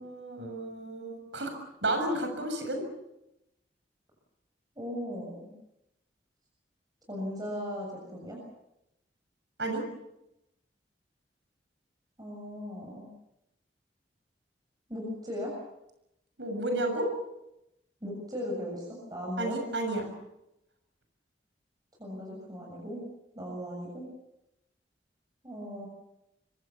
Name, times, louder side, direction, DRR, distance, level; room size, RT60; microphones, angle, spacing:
voice 1, 0.0-1.5 1.8-2.8 9.6-9.8 16.4-17.1 19.4-20.0, right 1 dB, 90° right, 5 dB, 6.7 m, -31 dB
voice 2, 4.8-5.5 7.1-8.4 12.2-13.1 14.9-15.6 18.0-19.6 22.0-23.0 23.3-24.1 25.4-25.9, equal, 25° right, -1 dB, 7.0 m, -37 dB
26.0 x 24.5 x 7.0 m, 0.86 s
head